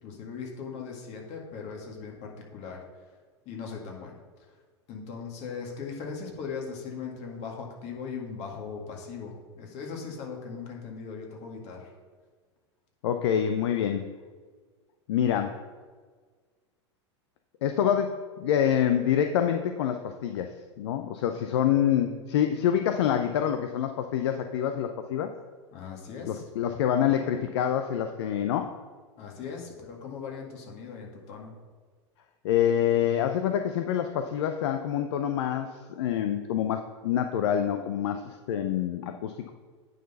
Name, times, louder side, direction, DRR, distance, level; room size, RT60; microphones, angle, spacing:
voice 1, 0.0-2.8 3.5-4.5 4.9-12.0 25.7-26.4 29.2-31.6, left 5 dB, 45° left, 0 dB, 2.0 m, -39 dB
voice 2, 13.0-14.1 15.1-15.6 17.6-25.3 26.3-28.8 32.4-39.5, left 9 dB, 65° left, 7 dB, 0.6 m, -26 dB
9.2 x 4.1 x 5.5 m, 1.5 s
hypercardioid pair, 95°, 15 cm